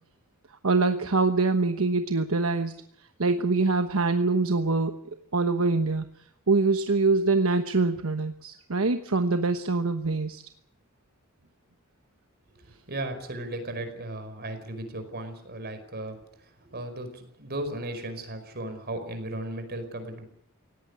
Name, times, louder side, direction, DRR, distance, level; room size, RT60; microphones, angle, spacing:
voice 1, 0.6-2.7 3.2-4.9 5.3-6.1 6.5-10.4, right 3 dB, 70° right, 8 dB, 1.2 m, -24 dB
voice 2, 12.9-20.2, right 1 dB, 50° right, 8 dB, 5.0 m, -36 dB
18.0 x 17.5 x 9.8 m, 0.68 s
head